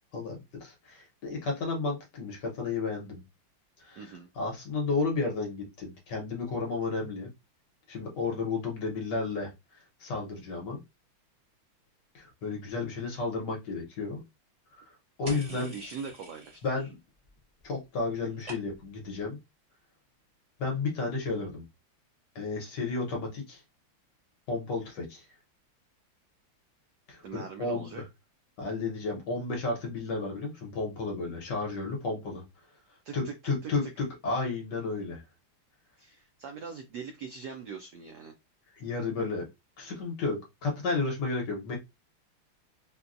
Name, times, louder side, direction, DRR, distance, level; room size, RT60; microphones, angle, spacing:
voice 1, 0.1-3.2 3.8-4.0 4.4-7.3 7.9-9.5 10.0-10.8 12.1-14.2 15.2-15.7 16.6-16.9 17.6-19.4 20.6-21.6 22.3-23.6 24.5-25.2 27.1-28.0 28.6-32.4 33.1-35.2 38.8-39.5 39.8-41.8, left 3 dB, 60° left, 1.4 m, -32 dB
voice 2, 4.0-4.3 15.2-16.9 27.2-28.0 33.0-33.9 36.0-38.3, right 6 dB, 85° right, 0.9 m, -42 dB
sound 1, 15.2-16.8 17.1-17.7 17.9-19.0, right 2 dB, 35° right, 0.5 m, -47 dB
4.1 x 2.2 x 2.5 m
omnidirectional pair, 2.3 m